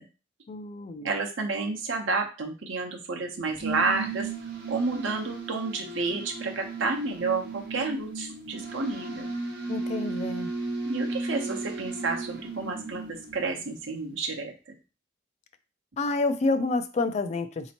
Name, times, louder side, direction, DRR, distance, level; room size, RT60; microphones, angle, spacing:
voice 1, 0.5-1.1 9.7-10.5 16.0-17.7, left 3 dB, 35° left, 9 dB, 0.3 m, -28 dB
voice 2, 1.0-4.3 4.7-9.3 10.8-14.7, right 3 dB, 90° right, 2 dB, 0.8 m, -30 dB
sound 1, 3.4-13.8, right 3 dB, 55° right, 0.7 m, -35 dB
4.2 x 2.8 x 2.8 m, 0.33 s
head